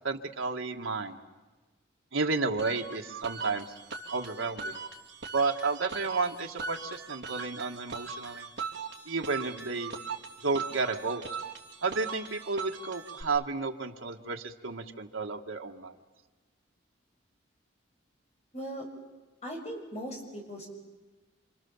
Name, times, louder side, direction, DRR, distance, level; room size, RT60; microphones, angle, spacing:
voice 1, 0.0-1.2 2.1-3.7 4.1-4.8 5.3-8.5 9.1-10.0 10.4-11.2 11.8-15.9, right 4 dB, 90° right, 2 dB, 1.9 m, -32 dB
sound 1, 2.6-13.2, right 4 dB, 60° right, 3.1 m, -40 dB
voice 2, 18.5-18.9 19.4-20.7, equal, 35° left, 1 dB, 6.2 m, -39 dB
28.5 x 26.5 x 7.4 m, 1.2 s
head